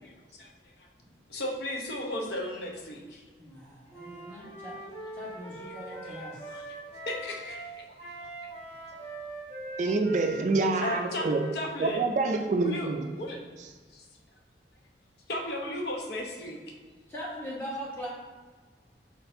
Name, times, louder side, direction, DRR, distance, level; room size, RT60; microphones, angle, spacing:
voice 1, 0.0-0.5 0.8-0.9 1.3-3.2 4.3-4.4 6.0-6.6 7.0-7.8 10.8-12.9 13.2-13.4 13.9-14.0 15.3-16.6, left 1 dB, 65° left, 1 dB, 0.7 m, -36 dB
voice 2, 3.4-4.8 5.1-6.6 17.1-18.1, equal, 15° left, -6 dB, 1.2 m, -40 dB
Wind instrument woodwind instrument, 3.9-7.7 8.0-12.1, right 2 dB, 35° left, 1.5 m, -42 dB
voice 3, 9.8-11.5 11.8-13.1, right 3 dB, 40° right, 5 dB, 0.3 m, -27 dB
4.6 x 4.2 x 2.6 m, 1.4 s
head